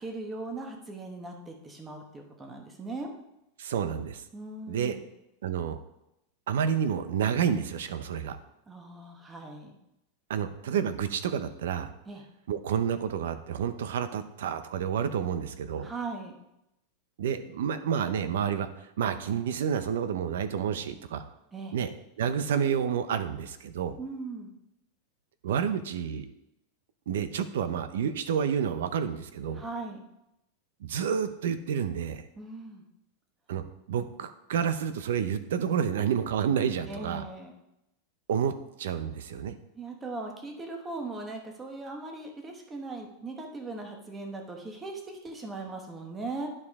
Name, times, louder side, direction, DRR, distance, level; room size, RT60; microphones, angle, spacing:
voice 1, 0.0-3.1 4.3-5.0 8.7-9.8 12.1-12.2 15.8-16.3 21.5-21.8 24.0-24.5 29.5-30.0 32.4-32.8 36.9-37.5 39.7-46.5, right 3 dB, 10° right, 2 dB, 1.0 m, -39 dB
voice 2, 3.6-4.2 4.7-5.0 5.4-5.8 6.5-8.4 10.3-11.9 12.5-15.9 17.2-21.2 21.7-21.9 22.2-24.0 25.4-26.3 27.1-29.6 30.8-32.2 33.5-37.2 38.3-38.5 38.8-39.5, right 8 dB, 85° right, 12 dB, 0.7 m, -29 dB
10.5 x 4.9 x 3.6 m, 0.85 s
supercardioid pair, 165°, 0 cm